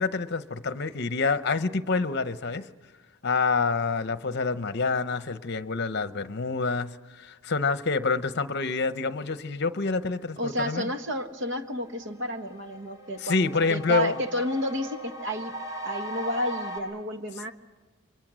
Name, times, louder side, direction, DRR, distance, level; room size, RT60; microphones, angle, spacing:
voice 1, 0.0-2.7 3.2-10.9 13.2-14.2, left 4 dB, 50° left, 12 dB, 0.9 m, -27 dB
voice 2, 10.4-15.5 15.8-17.5, equal, 55° right, 7 dB, 1.5 m, -31 dB
sound 1, 11.5-16.8, right 1 dB, 15° right, 4.6 m, -39 dB
30.0 x 24.5 x 6.3 m, 1.3 s
head